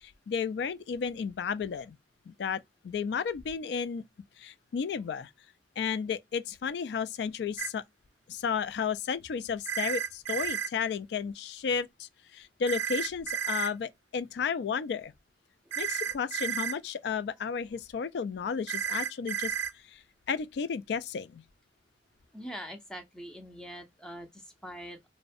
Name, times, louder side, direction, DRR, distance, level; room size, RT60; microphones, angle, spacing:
voice 1, 0.0-2.0 2.3-4.0 4.4-5.3 5.8-7.8 8.3-15.1 15.8-19.5 19.9-20.0 20.3-21.4, left 6 dB, 65° left, 0.3 m, -33 dB
sound 1, 7.6-7.7 9.7-10.7 12.7-13.7 15.7-16.7 18.7-19.7, right 7 dB, 85° right, 0.3 m, -32 dB
voice 2, 22.3-25.1, equal, 5° left, 0.5 m, -43 dB
2.4 x 2.1 x 2.5 m
head